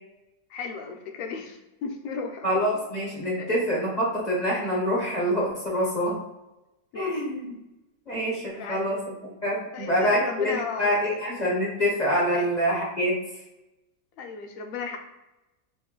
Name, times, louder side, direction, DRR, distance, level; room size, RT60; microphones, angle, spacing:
voice 1, 0.5-2.4 3.4-3.5 6.9-7.2 8.1-8.2 8.4-8.9 9.7-11.2 12.3-12.5 14.2-15.0, left 5 dB, 65° left, 3 dB, 0.9 m, -35 dB
voice 2, 2.4-6.2 6.9-7.6 8.1-9.0 9.4-13.2, equal, 40° left, -4 dB, 0.7 m, -26 dB
3.1 x 2.6 x 3.7 m, 0.98 s
omnidirectional pair, 1.7 m